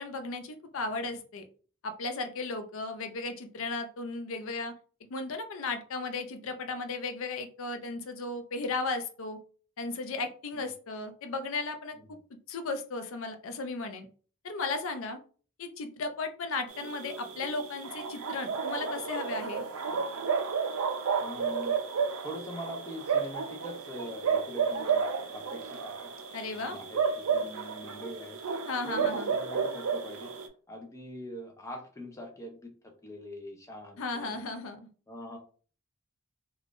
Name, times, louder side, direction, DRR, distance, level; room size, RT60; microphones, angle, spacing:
voice 1, 0.0-1.4 1.8-4.7 5.1-9.4 9.8-12.0 12.5-14.1 14.4-15.2 15.6-19.6 26.3-26.8 28.7-29.3 34.0-34.9, left 3 dB, 65° left, 7 dB, 0.5 m, -35 dB
sound 1, 16.7-30.5, right 6 dB, 70° right, 0.4 m, -32 dB
voice 2, 21.2-21.8 22.2-26.1 26.5-28.4 28.8-30.3 30.7-32.7 33.0-34.4 35.1-35.4, left 1 dB, 15° left, 3 dB, 0.5 m, -43 dB
3.4 x 2.3 x 2.4 m, 0.41 s
head